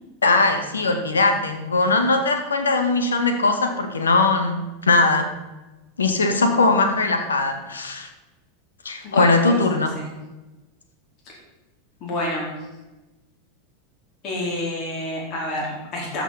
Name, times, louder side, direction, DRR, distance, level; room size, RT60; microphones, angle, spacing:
voice 1, 0.2-5.3 6.0-8.1 8.8-9.9, left 3 dB, 75° left, 7 dB, 1.5 m, -20 dB
voice 2, 9.0-9.6 9.9-10.1 12.0-12.5 14.2-16.2, left 1 dB, 40° left, -3 dB, 3.9 m, -28 dB
13.5 x 6.1 x 5.9 m, 1.1 s
figure-of-eight pair, 85°, 0 cm